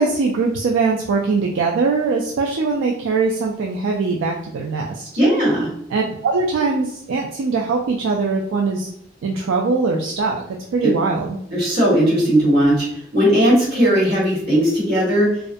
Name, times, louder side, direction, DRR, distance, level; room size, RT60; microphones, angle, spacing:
voice 1, 0.0-5.1 5.9-8.9 9.2-11.4, right 4 dB, 80° right, -1 dB, 0.3 m, -21 dB
voice 2, 5.2-5.7 10.8-10.9 11.5-12.9 13.1-15.4, equal, 55° right, -7 dB, 1.4 m, -17 dB
2.3 x 2.1 x 2.5 m, 0.70 s
head